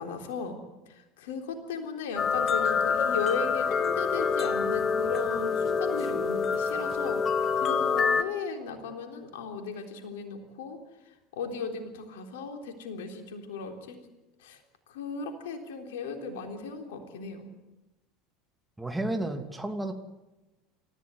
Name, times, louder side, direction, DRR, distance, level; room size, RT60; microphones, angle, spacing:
voice 1, 0.0-10.8 11.1-14.0 14.4-14.6 14.9-17.5, left 5 dB, 65° left, 5 dB, 3.6 m, -36 dB
sound 1, 2.2-8.2, left 5 dB, 30° left, 1.4 m, -26 dB
voice 2, 18.8-19.9, right 1 dB, 5° right, 5 dB, 2.7 m, -31 dB
29.0 x 15.0 x 9.5 m, 1.0 s
figure-of-eight pair, 70°, 0 cm